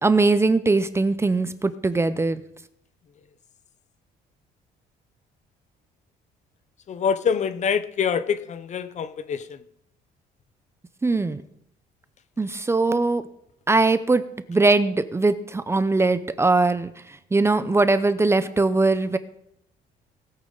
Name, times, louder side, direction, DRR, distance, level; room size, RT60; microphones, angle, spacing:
voice 1, 0.0-2.4 11.0-11.4 12.4-13.3 13.7-14.2 14.5-16.9 17.3-19.2, right 3 dB, 15° right, 0.6 m, -21 dB
voice 2, 6.9-9.6, left 7 dB, 45° left, 0.8 m, -25 dB
19.0 x 8.6 x 3.9 m
cardioid pair, 110°, 17 cm